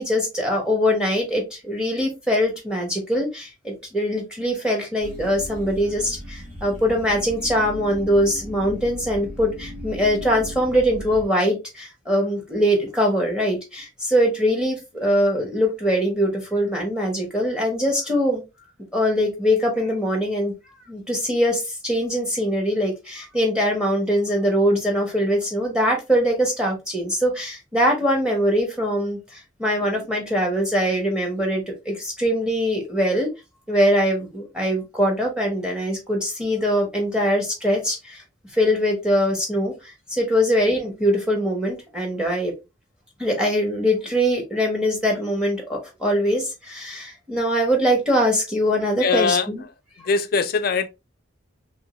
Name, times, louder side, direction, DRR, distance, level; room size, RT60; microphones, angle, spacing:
voice 1, 0.0-18.4 18.9-20.5 20.9-33.3 33.7-38.2 38.5-42.5 43.2-49.6, equal, 5° right, 1.0 m, -22 dB
sound 1, 5.0-11.2, equal, 40° right, 1.6 m, -37 dB
voice 2, 49.0-49.5 50.0-50.9, left 5 dB, 45° left, 0.3 m, -21 dB
2.9 x 2.7 x 2.8 m
head